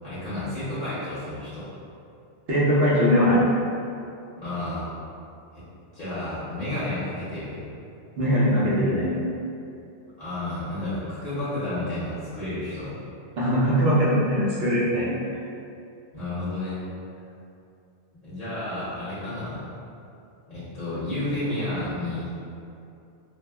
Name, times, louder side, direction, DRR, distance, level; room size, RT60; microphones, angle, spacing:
voice 1, 0.0-1.7 4.4-4.9 5.5-5.6 5.9-7.6 10.2-13.0 16.1-16.8 18.2-19.7 20.5-22.5, left 1 dB, 45° left, -13 dB, 0.9 m, -31 dB
voice 2, 2.5-3.4 8.2-9.2 13.4-15.1, equal, 65° right, -8 dB, 1.0 m, -21 dB
3.3 x 2.0 x 2.2 m, 2.6 s
omnidirectional pair, 1.1 m